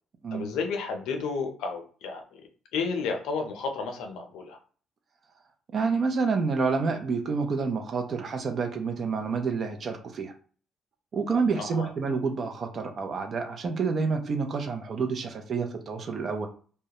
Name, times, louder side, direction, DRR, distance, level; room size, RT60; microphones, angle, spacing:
voice 1, 0.3-2.4 2.7-4.6 11.5-11.9, left 4 dB, 85° left, 4 dB, 0.5 m, -32 dB
voice 2, 5.7-10.3 11.1-16.5, right 4 dB, 45° right, 4 dB, 0.6 m, -28 dB
2.3 x 2.1 x 2.9 m, 0.41 s
cardioid pair, 90°, 0 cm